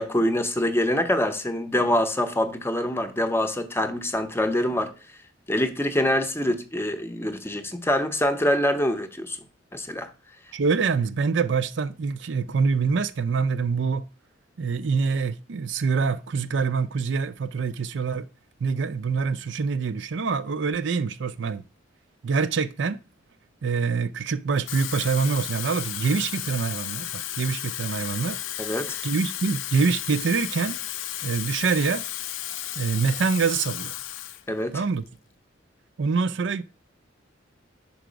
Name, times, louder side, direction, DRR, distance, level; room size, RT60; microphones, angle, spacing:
voice 1, 0.0-4.9 5.5-9.4 9.7-10.1 28.6-29.0 34.5-34.8, left 1 dB, 15° left, 0.6 m, -25 dB
voice 2, 10.5-14.1 14.6-18.3 18.6-21.6 22.2-23.0 23.6-28.4 29.0-30.8 31.2-32.0 32.8-33.9 34.7-35.0 36.0-36.6, right 5 dB, 65° right, 0.5 m, -25 dB
Water tap faucet / Fill (with liquid), 24.5-34.4 34.8-35.1, left 12 dB, 80° left, 0.5 m, -33 dB
5.6 x 4.7 x 5.0 m
head